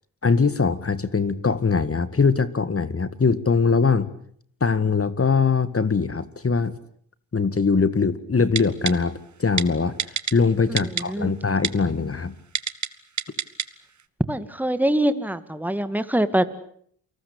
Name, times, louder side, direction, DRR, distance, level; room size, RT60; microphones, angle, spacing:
voice 1, 0.2-4.1 4.6-6.7 7.3-10.0 10.3-12.3, left 4 dB, 30° left, 15 dB, 1.9 m, -22 dB
Typing, 8.5-8.9 9.6-9.7 10.0-10.3 10.8-11.0 11.6-11.7 12.5-12.9 13.2-13.6 14.0-14.1, right 7 dB, 40° right, 1.6 m, -25 dB
voice 2, 10.8-11.3 14.3-16.4, right 1 dB, 5° right, 12 dB, 2.2 m, -24 dB
28.5 x 19.0 x 8.6 m, 0.64 s
supercardioid pair, 55°, 47 cm